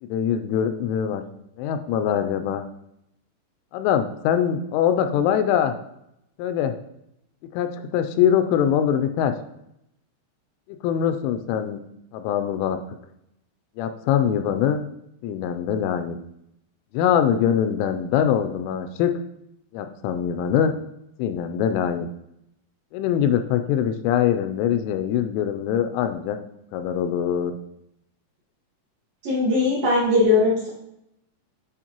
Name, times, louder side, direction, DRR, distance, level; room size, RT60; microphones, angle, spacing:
voice 1, 0.0-1.2 1.6-2.7 3.7-5.7 6.4-6.7 7.5-9.3 10.8-11.8 12.1-12.8 13.8-14.8 15.2-16.2 16.9-19.1 19.7-20.7 21.2-22.1 22.9-26.4 26.7-27.5, left 9 dB, 85° left, 8 dB, 3.0 m, -23 dB
voice 2, 29.2-30.7, left 3 dB, 65° right, -6 dB, 2.5 m, -19 dB
9.8 x 4.5 x 2.9 m, 0.79 s
omnidirectional pair, 5.5 m